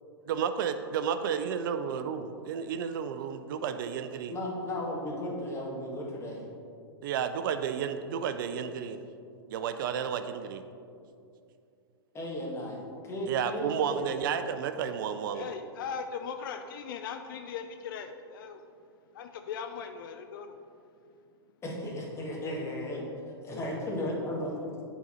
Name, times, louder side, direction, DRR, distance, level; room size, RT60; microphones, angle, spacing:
voice 1, 0.3-4.4 7.0-9.0 9.5-10.6 13.3-15.5, right 7 dB, 55° right, 10 dB, 0.4 m, -32 dB
voice 2, 4.3-6.4 12.1-14.0 21.6-23.0 23.4-24.5, left 1 dB, 20° left, -3 dB, 1.7 m, -35 dB
voice 3, 15.3-18.6 19.1-20.6, left 6 dB, 55° left, 7 dB, 0.4 m, -39 dB
9.4 x 4.0 x 4.3 m, 2.5 s
hypercardioid pair, 110°, 13 cm